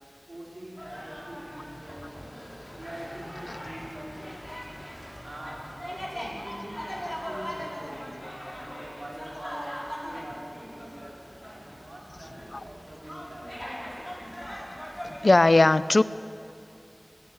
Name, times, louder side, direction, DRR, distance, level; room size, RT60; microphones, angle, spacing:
voice 1, 0.3-2.1 2.7-4.4 5.2-13.6, right 1 dB, 90° right, -3 dB, 4.0 m, -44 dB
sound 1, 0.8-15.3, equal, 10° left, 6.3 m, -40 dB
voice 2, 15.2-16.0, left 2 dB, 80° left, 15 dB, 0.6 m, -18 dB
28.5 x 20.5 x 9.8 m, 2.9 s
wide cardioid pair, 45°, 0 cm